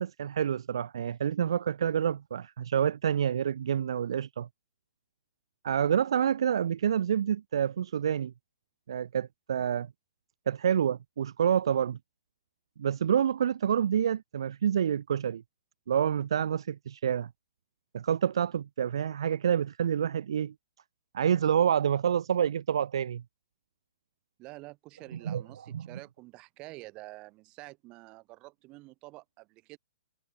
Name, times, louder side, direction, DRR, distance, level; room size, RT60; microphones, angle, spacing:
voice 1, 0.0-4.5 5.6-8.3 8.9-9.9 10.5-12.0 12.8-15.4 15.9-17.3 17.9-20.5 21.1-23.2 25.2-25.4 25.7-25.9, right 8 dB, 70° right, 1.3 m, -28 dB
voice 2, 24.4-29.8, right 22 dB, 35° right, 7.9 m, -48 dB
hypercardioid pair, 125°, 3 cm